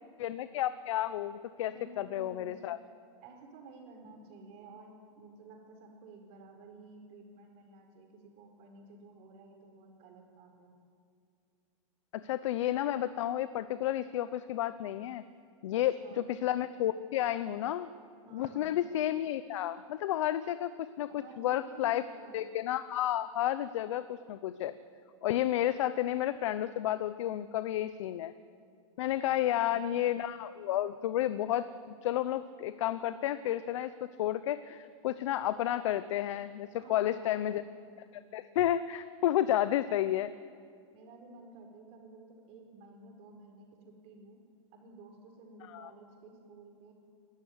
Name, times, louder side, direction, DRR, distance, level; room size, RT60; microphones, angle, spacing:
voice 1, 0.2-2.8 12.1-15.2 15.6-17.9 18.3-21.1 21.4-22.0 22.3-24.7 25.2-28.3 29.0-37.6 38.1-40.3 45.7-45.9, left 12 dB, 65° left, 14 dB, 0.8 m, -31 dB
voice 2, 1.6-2.6 3.2-10.7 15.7-16.4 18.2-18.8 21.1-22.4 29.5-30.2 36.7-38.2 39.4-40.2 40.9-44.4 44.7-46.9, right 3 dB, 40° right, 2 dB, 4.8 m, -53 dB
22.5 x 13.5 x 9.7 m, 2.4 s
supercardioid pair, 145°, 17 cm